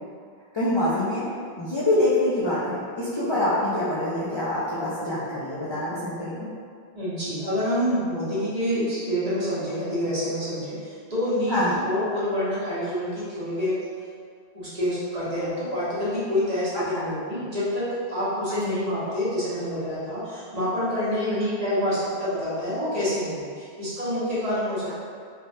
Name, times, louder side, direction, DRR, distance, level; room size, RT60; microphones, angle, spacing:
voice 1, 0.5-1.3 1.6-6.5 8.7-8.9 11.5-11.8 16.7-17.0 18.6-18.8, left 1 dB, 45° left, -9 dB, 0.3 m, -25 dB
voice 2, 6.9-13.8 14.5-24.9, equal, 40° right, -12 dB, 1.1 m, -27 dB
3.5 x 2.2 x 2.6 m, 2.1 s
omnidirectional pair, 1.1 m